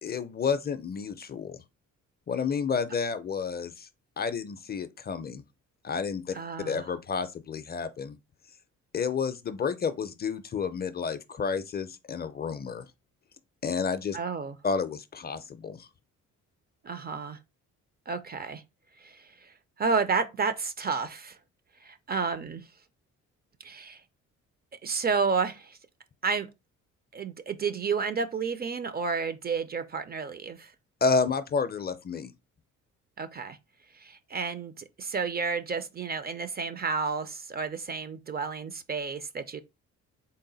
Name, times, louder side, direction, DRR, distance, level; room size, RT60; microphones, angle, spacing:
voice 1, 0.0-1.6 2.3-3.9 4.2-5.4 5.8-6.3 6.7-8.2 8.9-12.8 13.6-14.2 14.6-15.9 31.0-32.3, left 5 dB, 30° left, 0.4 m, -30 dB
voice 2, 6.3-6.8 14.1-14.6 16.8-17.4 18.1-18.6 19.0-21.4 21.8-22.6 23.6-24.0 24.8-25.8 26.2-26.5 27.1-30.7 33.2-33.6 33.9-39.6, right 5 dB, 30° right, 0.4 m, -31 dB
3.9 x 2.1 x 3.8 m
cardioid pair, 90°, 30 cm